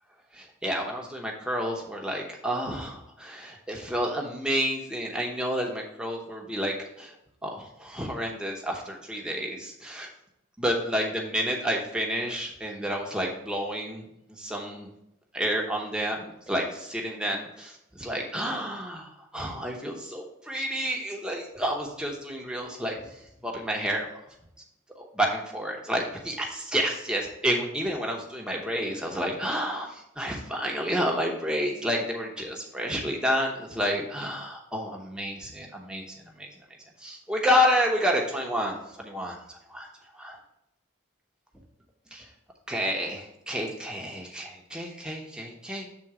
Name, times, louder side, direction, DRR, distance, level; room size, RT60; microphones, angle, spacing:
voice 1, 0.3-7.1 7.4-10.1 10.6-14.9 15.3-24.1 24.9-36.5 37.0-39.9 40.1-40.4 42.1-42.3 42.7-45.9, equal, 5° right, -1 dB, 0.9 m, -30 dB
7.4 x 3.8 x 4.9 m, 0.82 s
head